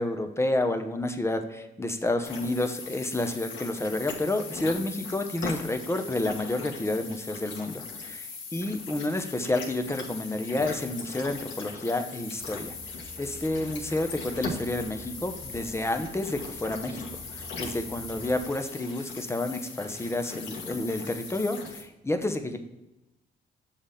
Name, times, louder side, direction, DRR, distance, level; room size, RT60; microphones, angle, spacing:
voice 1, 0.0-12.7 13.2-22.6, left 2 dB, 15° left, 6 dB, 0.8 m, -30 dB
sound 1, 2.2-21.8, left 4 dB, 70° left, 1.5 m, -39 dB
sound 2, 12.4-18.5, equal, 30° left, 1.7 m, -48 dB
7.2 x 3.5 x 5.5 m, 0.97 s
cardioid pair, 90°, 20 cm